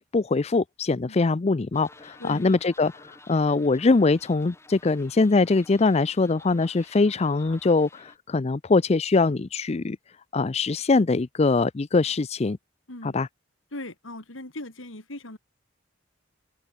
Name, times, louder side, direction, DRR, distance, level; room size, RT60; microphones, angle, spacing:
voice 1, 0.1-10.0 10.3-12.6 13.0-13.3, left 3 dB, 30° left, 0.5 m, -22 dB
sound 1, 1.7-8.2, left 2 dB, 15° left, 5.8 m, -52 dB
voice 2, 13.7-15.4, left 1 dB, 80° left, 4.3 m, -39 dB
open air
head